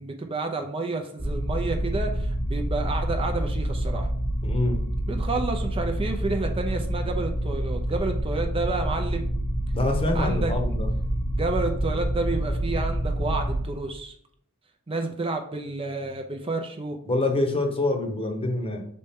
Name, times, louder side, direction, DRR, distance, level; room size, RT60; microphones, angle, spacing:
voice 1, 0.0-4.1 5.1-9.3 10.1-10.5 11.4-14.1 14.9-17.0, right 3 dB, 25° right, 4 dB, 0.5 m, -30 dB
sound 1, 1.2-13.6, right 1 dB, ahead, 0.9 m, -27 dB
voice 2, 4.4-4.8 9.7-10.9 17.0-18.8, left 2 dB, 25° left, 4 dB, 0.9 m, -26 dB
6.5 x 4.3 x 3.6 m, 0.64 s
head